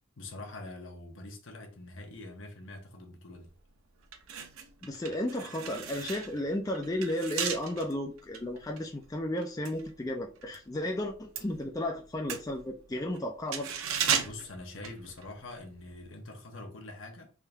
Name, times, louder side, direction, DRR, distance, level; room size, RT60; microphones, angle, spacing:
voice 1, 0.2-3.5 14.2-17.3, left 2 dB, 65° left, 0.9 m, -44 dB
sound 1, 3.4-3.6 4.0-10.6 10.9-15.6 15.9-16.0, right 7 dB, 85° right, 0.6 m, -36 dB
voice 2, 4.8-13.7, left 1 dB, 15° left, 0.4 m, -33 dB
3.7 x 2.7 x 3.3 m
head